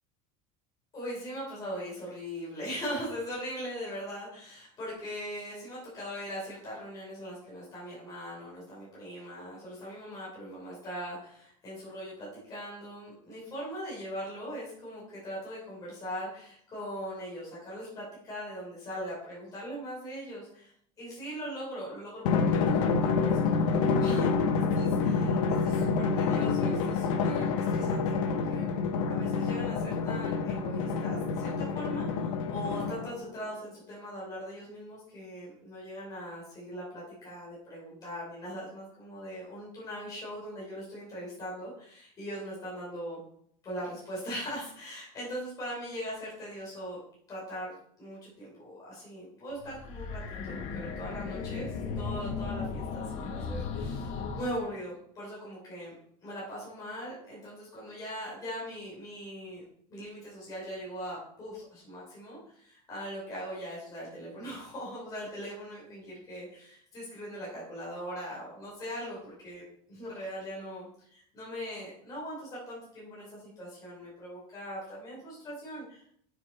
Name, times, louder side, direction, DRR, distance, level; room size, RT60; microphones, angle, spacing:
voice 1, 0.9-24.4 24.7-28.8 29.0-43.2 43.6-47.0 47.3-51.7 52.0-56.0 56.2-59.6 59.9-69.6 69.9-76.1, equal, 20° left, -6 dB, 4.3 m, -40 dB
Drum, 22.2-33.2, left 5 dB, 85° left, 1.1 m, -28 dB
sound 1, 49.6-54.5, left 5 dB, 40° left, 1.2 m, -36 dB
8.9 x 7.1 x 4.3 m, 0.66 s
cardioid pair, 165°, 17 cm